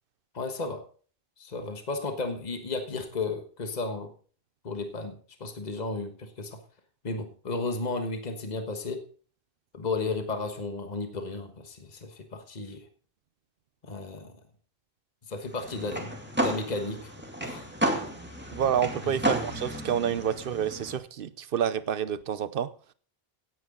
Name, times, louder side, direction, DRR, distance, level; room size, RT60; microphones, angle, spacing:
voice 1, 0.3-0.8 1.4-4.1 4.6-6.6 7.0-9.0 9.7-12.9 13.8-14.3 15.3-17.1 17.4-17.7 19.0-19.1, left 3 dB, 45° left, 1.5 m, -34 dB
sound 1, 15.5-21.0, right 1 dB, 10° right, 2.3 m, -32 dB
voice 2, 18.5-22.7, right 9 dB, 60° right, 0.9 m, -28 dB
17.0 x 9.8 x 3.8 m
omnidirectional pair, 1.0 m